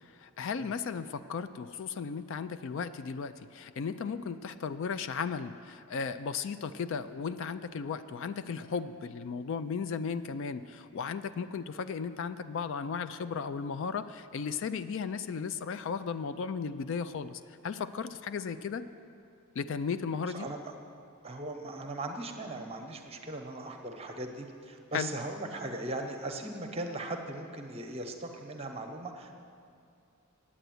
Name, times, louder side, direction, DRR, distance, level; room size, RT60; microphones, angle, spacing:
voice 1, 0.2-18.8 19.6-20.5 24.9-25.1, left 6 dB, 55° left, 12 dB, 0.3 m, -35 dB
voice 2, 20.2-20.7 21.2-29.3, right 2 dB, 25° right, 4 dB, 0.8 m, -39 dB
8.8 x 8.0 x 9.2 m, 2.5 s
head